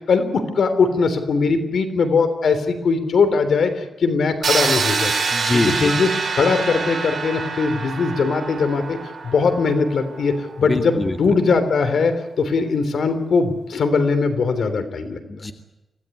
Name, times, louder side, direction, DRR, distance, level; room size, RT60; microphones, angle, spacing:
voice 1, 0.1-5.1 5.7-9.0 9.2-15.2, left 4 dB, 75° left, 9 dB, 3.4 m, -20 dB
sound 1, 4.4-10.2, right 5 dB, 60° right, 6.5 m, -25 dB
voice 2, 5.3-5.9 10.6-11.2 15.3-15.5, left 2 dB, 25° left, 4 dB, 2.2 m, -23 dB
25.5 x 17.0 x 9.8 m, 1.0 s
wide cardioid pair, 115°, 0 cm